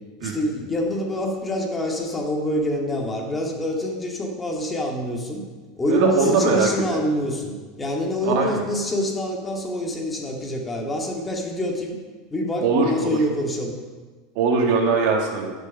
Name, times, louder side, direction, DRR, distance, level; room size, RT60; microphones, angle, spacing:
voice 1, 0.2-5.4 5.8-12.0 12.3-13.7, left 1 dB, 20° left, 0 dB, 2.2 m, -26 dB
voice 2, 5.9-7.0 8.2-8.6 12.6-13.2 14.4-15.5, right 4 dB, 60° right, 1 dB, 2.0 m, -21 dB
12.0 x 6.6 x 5.6 m, 1.3 s
supercardioid pair, 105°, 0 cm